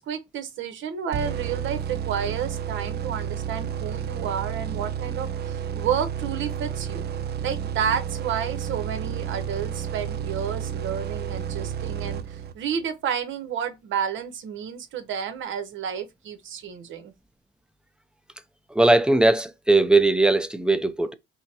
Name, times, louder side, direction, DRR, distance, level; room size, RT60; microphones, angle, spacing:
voice 1, 0.0-7.0 7.4-17.1, right 8 dB, 75° right, 0.9 m, -31 dB
sound 1, 1.1-12.8, right 8 dB, 55° right, 0.5 m, -31 dB
voice 2, 18.7-21.1, right 2 dB, 5° right, 0.5 m, -19 dB
5.5 x 2.1 x 2.8 m
cardioid pair, 90°, 20 cm